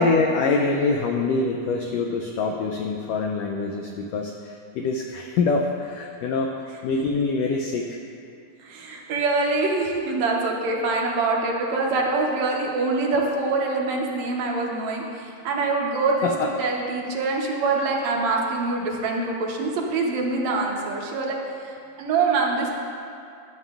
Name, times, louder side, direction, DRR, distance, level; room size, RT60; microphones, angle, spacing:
voice 1, 0.0-8.0 16.2-16.5, left 4 dB, 80° left, 2 dB, 1.5 m, -25 dB
voice 2, 8.6-22.7, right 3 dB, 75° right, -1 dB, 2.2 m, -25 dB
13.0 x 7.6 x 2.4 m, 2.4 s
omnidirectional pair, 3.4 m